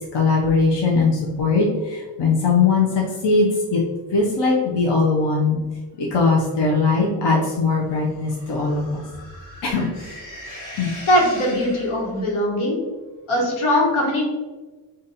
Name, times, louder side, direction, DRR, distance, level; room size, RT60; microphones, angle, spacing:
voice 1, 0.1-3.8 4.1-5.6 6.0-9.0 9.6-9.9 10.7-10.9, left 4 dB, 60° left, -2 dB, 0.7 m, -20 dB
sound 1, 7.9-12.2, equal, 40° left, 1.4 m, -40 dB
voice 2, 11.1-12.8 13.3-14.2, left 1 dB, 85° left, -3 dB, 1.4 m, -20 dB
4.0 x 2.6 x 4.0 m, 1.3 s
wide cardioid pair, 145°, 48 cm